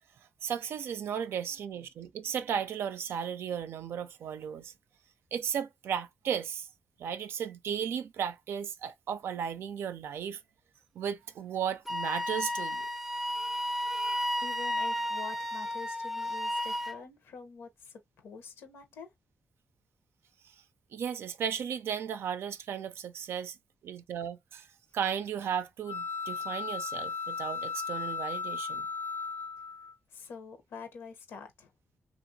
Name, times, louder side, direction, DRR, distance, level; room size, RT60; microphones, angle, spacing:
voice 1, 0.4-4.7 5.3-6.7 7.0-10.4 10.9-12.9 20.9-23.6 23.8-24.7 24.9-28.9, right 8 dB, 80° right, 0.4 m, -35 dB
Wind instrument woodwind instrument, 11.9-17.0, left 1 dB, 5° right, 0.4 m, -33 dB
voice 2, 14.4-19.1 30.1-31.7, left 5 dB, 85° left, 0.8 m, -46 dB
sound 1, 25.9-29.9, left 5 dB, 60° left, 0.4 m, -36 dB
2.9 x 2.5 x 2.6 m
cardioid pair, 60°, 4 cm